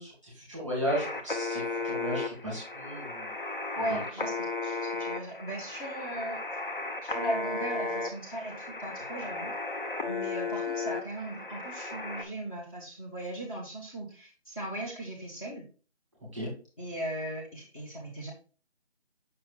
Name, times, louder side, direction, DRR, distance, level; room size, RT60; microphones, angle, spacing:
voice 1, 0.0-3.3 3.9-4.0 16.3-16.5, equal, ahead, -5 dB, 1.8 m, -35 dB
sound 1, 0.9-12.2, left 3 dB, 50° left, 1.0 m, -35 dB
voice 2, 3.8-6.4 7.0-9.5 10.0-15.7 16.8-18.3, right 1 dB, 30° left, -4 dB, 1.4 m, -37 dB
7.4 x 5.8 x 2.4 m, 0.36 s
figure-of-eight pair, 165°, 34 cm